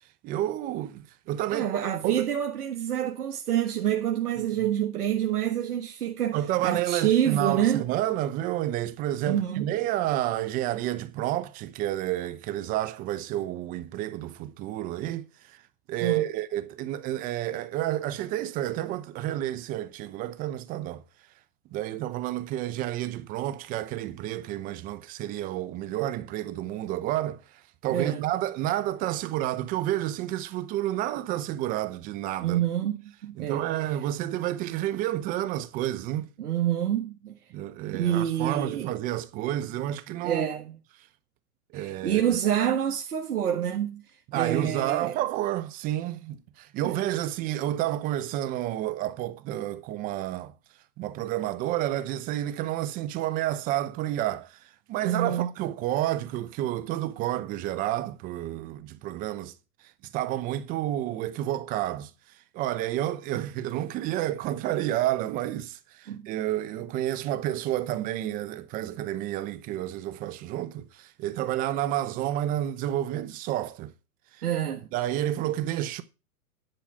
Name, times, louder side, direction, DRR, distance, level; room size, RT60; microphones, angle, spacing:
voice 1, 0.2-2.3 4.4-4.5 6.3-15.6 15.9-21.0 21.7-32.6 33.4-36.3 37.5-40.5 41.7-42.2 44.3-50.5 51.0-54.6 54.9-59.5 60.1-62.1 62.5-73.9 74.3-74.4 74.9-76.0, right 13 dB, 20° right, 0.6 m, -30 dB
voice 2, 1.5-7.8 9.2-9.7 16.0-16.2 27.9-28.2 32.4-33.7 36.4-37.4 37.9-38.9 40.2-40.8 41.7-44.0 44.3-45.1 46.8-47.0 55.0-55.5 66.1-66.3 74.4-74.8, right 10 dB, 80° right, 1.5 m, -27 dB
10.5 x 4.8 x 7.3 m
hypercardioid pair, 140°, 45 cm